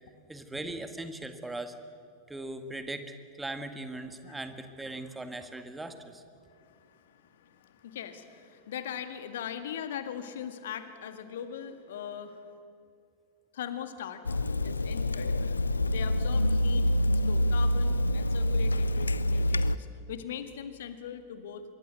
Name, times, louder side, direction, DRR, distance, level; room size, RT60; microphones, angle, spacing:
voice 1, 0.3-1.7 2.3-6.2, right 2 dB, 5° right, 8 dB, 2.0 m, -39 dB
voice 2, 6.5-12.5 13.5-14.2 14.6-15.6 15.9-16.9 17.3-21.6, left 9 dB, 60° left, 9 dB, 1.8 m, -40 dB
Water tap faucet / Sink (filling or washing), 14.2-19.8, left 1 dB, 75° left, 0.6 m, -26 dB
25.5 x 22.5 x 8.2 m, 2.3 s
figure-of-eight pair, 90°, 0 cm